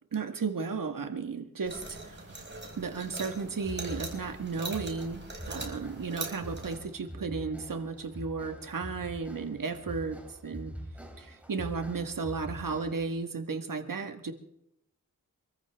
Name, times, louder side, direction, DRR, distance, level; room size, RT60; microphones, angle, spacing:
voice 1, 0.1-2.2 2.8-5.2 5.5-10.7 11.2-14.3, right 4 dB, 70° right, 7 dB, 1.7 m, -34 dB
sound 1, 1.6-6.8, right 2 dB, 30° right, 5.0 m, -41 dB
sound 2, 3.6-13.2, equal, 5° right, 3.6 m, -45 dB
26.0 x 14.0 x 3.5 m, 0.78 s
wide cardioid pair, 65°, 34 cm